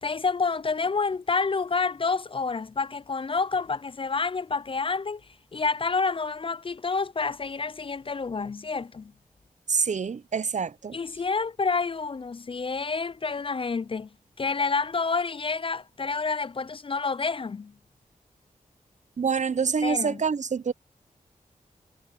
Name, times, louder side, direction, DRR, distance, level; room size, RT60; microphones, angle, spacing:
voice 1, 0.0-5.2 5.5-9.1 10.9-14.1 14.4-17.7 19.8-20.2, left 4 dB, 35° left, 0.4 m, -28 dB
voice 2, 9.7-11.0 19.2-20.7, right 5 dB, 55° right, 0.7 m, -26 dB
cardioid pair, 60°, 15 cm